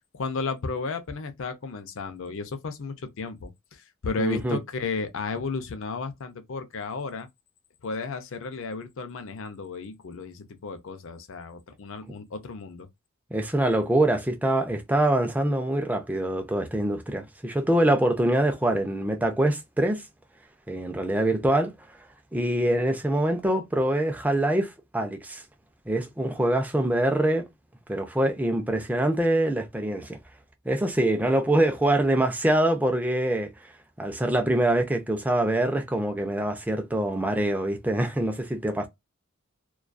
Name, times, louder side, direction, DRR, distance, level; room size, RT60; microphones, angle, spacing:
voice 1, 0.1-7.3 7.8-12.9, left 4 dB, 60° left, 0.5 m, -33 dB
voice 2, 4.2-4.6 13.3-20.0 20.7-21.7 22.3-25.4 25.9-27.4 27.9-30.2 30.7-33.5 34.0-38.9, right 1 dB, 5° right, 0.4 m, -24 dB
2.3 x 2.3 x 2.4 m
head